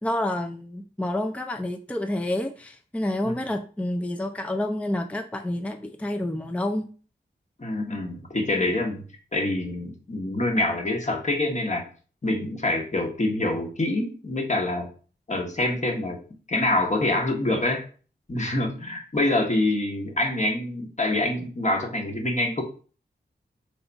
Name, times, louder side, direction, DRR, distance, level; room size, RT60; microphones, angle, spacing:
voice 1, 0.0-6.9, left 1 dB, 5° left, 5 dB, 0.5 m, -29 dB
voice 2, 7.6-9.0 9.3-11.9 12.2-14.9 15.3-16.2 16.5-17.8 18.3-22.6, left 2 dB, 40° left, 2 dB, 1.2 m, -26 dB
3.7 x 3.5 x 4.0 m, 0.39 s
wide cardioid pair, 70°, 19 cm